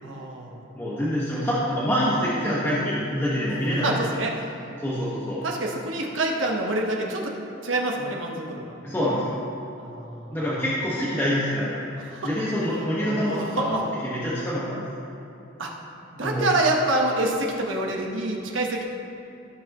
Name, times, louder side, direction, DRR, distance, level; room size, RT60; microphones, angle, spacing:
voice 1, 0.0-0.6 3.8-4.5 5.4-7.3 7.6-8.8 9.8-10.4 12.0-12.3 12.7-13.8 15.6-15.7 16.1-18.8, right 2 dB, 70° right, 0 dB, 1.3 m, -27 dB
voice 2, 0.7-3.9 4.8-5.4 8.8-9.3 10.3-11.8 12.2-14.8 16.2-16.4, equal, 10° left, -9 dB, 1.5 m, -26 dB
16.5 x 6.5 x 3.1 m, 2.9 s
head